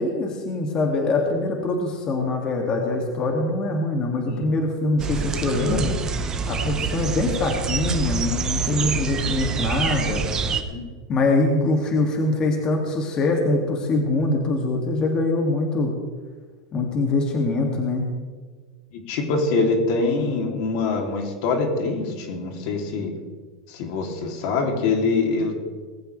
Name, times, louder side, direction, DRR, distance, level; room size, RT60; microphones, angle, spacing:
voice 1, 0.0-10.3 11.1-15.9 16.7-18.1, left 2 dB, 30° left, 1 dB, 2.5 m, -23 dB
sound 1, 5.0-10.6, right 5 dB, 25° right, 1.3 m, -26 dB
voice 2, 18.9-23.1 23.7-25.6, left 3 dB, 60° left, 2 dB, 3.1 m, -24 dB
20.0 x 14.5 x 3.4 m, 1.5 s
supercardioid pair, 130°, 3 cm